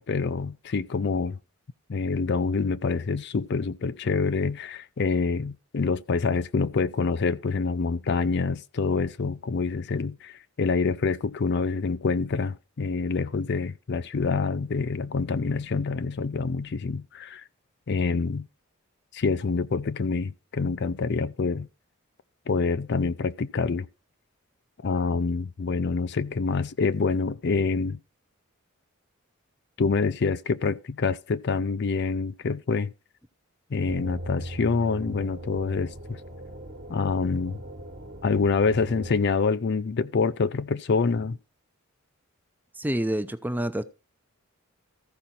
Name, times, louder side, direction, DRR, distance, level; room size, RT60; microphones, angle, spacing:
voice 1, 0.0-1.4 1.9-17.4 17.9-18.5 19.1-21.7 22.5-23.9 24.8-28.0 29.8-32.9 33.7-36.2 36.9-37.6 38.2-41.4, left 4 dB, 50° left, 0.5 m, -26 dB
sound 1, 33.9-39.1, right 1 dB, 45° right, 1.3 m, -39 dB
voice 2, 42.8-43.8, right 1 dB, 10° right, 0.5 m, -27 dB
14.0 x 5.2 x 4.3 m
head